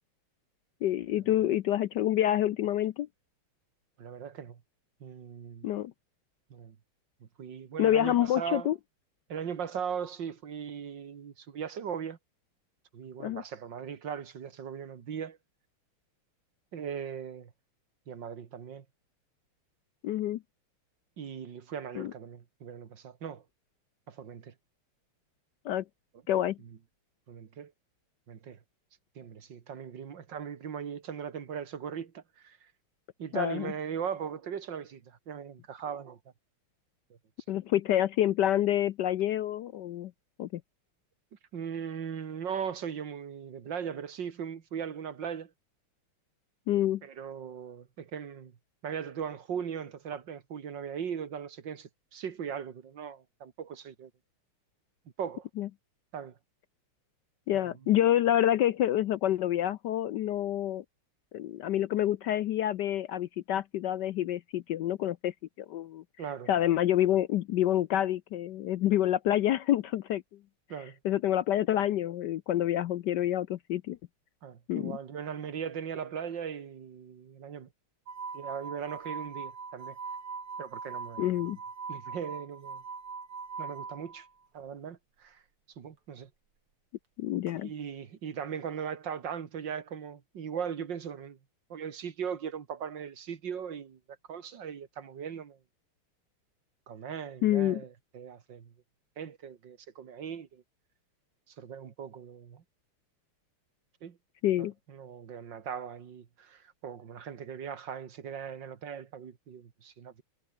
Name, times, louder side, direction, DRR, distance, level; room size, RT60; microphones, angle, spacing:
voice 1, 0.8-3.1 5.6-5.9 7.8-8.8 13.2-13.4 20.0-20.4 21.9-22.1 25.6-25.8 26.3-26.6 33.3-33.7 37.5-40.1 40.4-40.6 46.7-47.0 55.6-55.7 57.5-60.8 61.3-65.3 65.7-66.0 66.5-70.2 71.0-74.0 74.7-75.0 81.2-81.6 87.2-87.7 97.4-97.8 104.4-104.7, left 12 dB, 70° left, 1.0 m, -27 dB
voice 2, 4.0-4.6 5.0-5.7 6.5-6.8 7.4-8.7 9.3-12.2 12.9-15.4 16.7-17.5 18.1-18.8 21.2-23.4 24.1-24.5 27.3-27.7 28.3-28.6 29.2-32.7 33.2-36.2 41.5-45.5 47.0-48.5 48.8-54.1 55.2-55.5 56.1-56.3 57.5-57.7 66.2-66.5 70.7-71.0 74.4-77.7 78.3-80.0 80.6-81.3 81.9-82.8 83.6-84.3 84.5-85.4 85.8-86.3 87.6-91.4 91.7-94.0 94.3-95.6 96.9-98.7 99.2-100.6 101.5-102.6 104.0-104.2 104.6-110.2, right 7 dB, 55° right, 2.3 m, -39 dB
sound 1, 78.1-84.3 87.5-87.6, right 5 dB, 80° right, 4.3 m, -41 dB
omnidirectional pair, 2.4 m